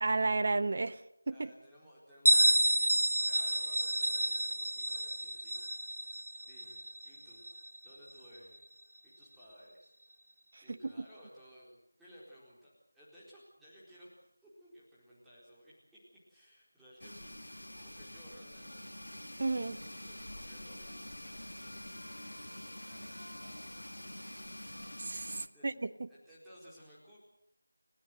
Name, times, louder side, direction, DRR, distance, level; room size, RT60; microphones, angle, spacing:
voice 1, 0.0-1.5 10.5-10.9 19.4-19.8 25.0-26.1, right 3 dB, 35° right, 13 dB, 1.0 m, -33 dB
voice 2, 1.3-5.9 6.4-7.5 7.8-8.6 9.0-9.9 10.6-16.0 16.3-17.4 17.8-18.9 19.9-23.8 25.4-25.7 26.1-27.2, equal, ahead, -9 dB, 4.3 m, -58 dB
Bell, 2.2-7.8, right 1 dB, 70° right, 1.0 m, -29 dB
sound 1, 17.0-25.5, left 1 dB, 75° left, 1.7 m, -46 dB
30.0 x 16.0 x 8.0 m, 0.75 s
figure-of-eight pair, 170°, 0 cm